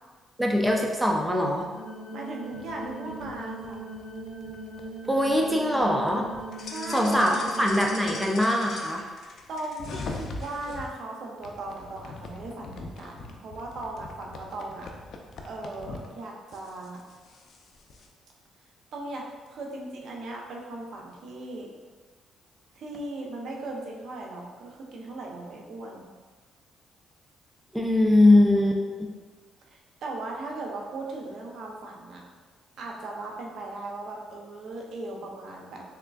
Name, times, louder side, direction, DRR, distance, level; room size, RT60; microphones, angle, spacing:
voice 1, 0.4-1.7 5.1-6.3 6.9-9.0 27.7-28.8, left 1 dB, 5° right, 0 dB, 0.5 m, -22 dB
sound 1, 1.7-8.2, right 2 dB, 15° left, 1.2 m, -40 dB
voice 2, 2.1-3.8 6.6-7.4 9.5-14.9 15.4-17.0 18.9-21.7 22.8-26.1 29.7-32.2 32.8-35.8, right 2 dB, 70° right, -1 dB, 0.6 m, -38 dB
sound 2, 2.5-10.9 11.4-16.1 16.5-18.1, left 3 dB, 65° left, 0.4 m, -42 dB
3.6 x 3.3 x 2.3 m, 1.4 s
cardioid pair, 90°, 0 cm